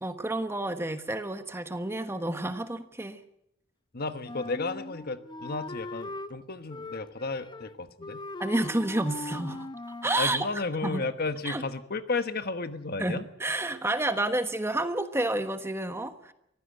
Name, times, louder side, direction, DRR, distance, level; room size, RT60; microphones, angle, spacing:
voice 1, 0.0-3.2 8.4-9.7 10.0-10.5 10.8-11.0 11.4-11.6 13.0-16.3, right 1 dB, 10° right, 9 dB, 1.2 m, -30 dB
voice 2, 3.9-8.2 10.2-13.3, left 3 dB, 50° left, 10 dB, 1.2 m, -33 dB
Wind instrument woodwind instrument, 4.2-6.3 6.7-7.7 8.0-10.2, left 2 dB, 20° left, 0.7 m, -40 dB
23.5 x 15.5 x 8.0 m, 0.78 s
head